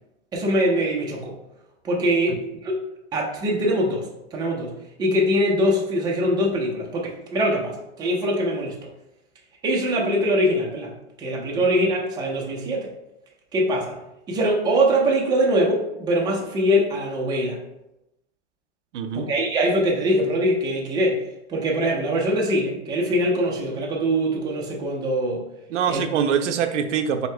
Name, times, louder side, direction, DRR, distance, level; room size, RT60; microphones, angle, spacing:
voice 1, 0.3-1.3 1.8-2.8 3.1-4.7 5.0-8.8 9.6-10.9 11.2-12.9 13.5-14.0 14.3-17.6 19.1-21.2 21.5-25.4 25.9-26.0, equal, 10° right, -2 dB, 0.5 m, -23 dB
voice 2, 18.9-19.3 25.7-27.3, right 7 dB, 80° right, 8 dB, 0.5 m, -24 dB
4.1 x 2.8 x 3.3 m, 0.89 s
hypercardioid pair, 135°, 36 cm